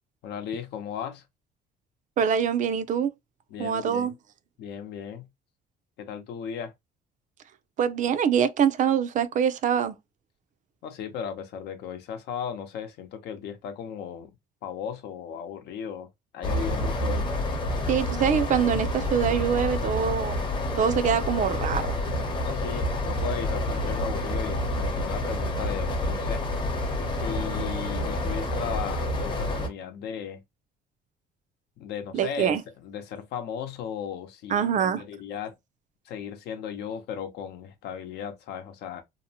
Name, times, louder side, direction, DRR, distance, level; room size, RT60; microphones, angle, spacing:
voice 1, 0.2-1.2 3.5-4.1 4.6-5.3 6.0-6.7 10.8-14.3 14.6-16.1 16.3-17.3 22.4-26.4 27.1-30.4 31.8-32.6 32.8-35.5 36.1-39.0, left 8 dB, 80° left, 0.7 m, -36 dB
voice 2, 2.2-3.1 3.6-4.1 7.8-10.0 17.9-20.5 20.8-21.9 32.1-32.6 34.5-35.0, right 8 dB, 50° right, 0.4 m, -24 dB
sound 1, 16.4-29.7, left 1 dB, 30° left, 0.8 m, -28 dB
2.8 x 2.0 x 2.7 m
cardioid pair, 110°, 17 cm